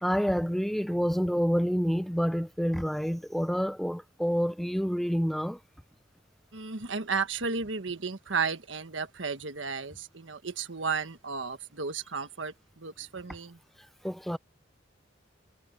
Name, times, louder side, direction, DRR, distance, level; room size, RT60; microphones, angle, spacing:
voice 1, 0.0-5.6 14.0-14.4, equal, ahead, 0.8 m, -28 dB
voice 2, 6.5-13.6, right 5 dB, 80° right, 1.4 m, -33 dB
head